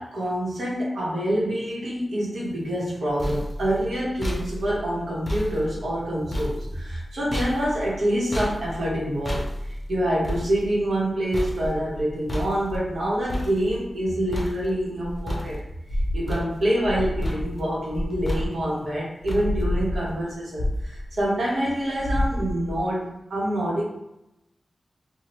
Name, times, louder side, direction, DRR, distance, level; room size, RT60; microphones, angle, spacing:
voice 1, 0.0-9.5 9.9-15.6 16.1-23.8, right 1 dB, 85° right, -5 dB, 1.0 m, -26 dB
sound 1, 2.8-14.1 14.3-14.9 15.3-15.9 16.3-17.0 17.2-17.7 18.3-18.8 19.3-19.8, equal, 25° left, 0.5 m, -33 dB
sound 2, 11.6-13.8 14.2-18.8 19.2-21.5 21.8-22.8, left 1 dB, 80° left, 0.5 m, -30 dB
2.8 x 2.2 x 3.0 m, 0.89 s
wide cardioid pair, 90°, 0 cm